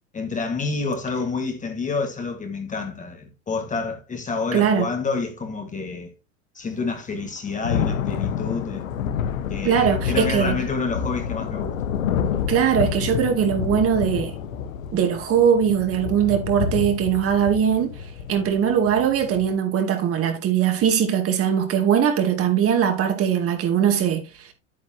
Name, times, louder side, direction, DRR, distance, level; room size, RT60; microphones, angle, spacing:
voice 1, 0.1-6.1 6.5-8.9 9.5-11.7, left 4 dB, 20° left, 1.6 m, -28 dB
voice 2, 4.5-4.9 9.6-10.6 12.5-14.3 14.9-17.9 18.3-24.2, right 8 dB, 35° right, 2.3 m, -20 dB
Thunder / Rain, 7.1-19.5, left 8 dB, 85° left, 1.2 m, -28 dB
9.5 x 8.8 x 2.8 m
hypercardioid pair, 115°, 39 cm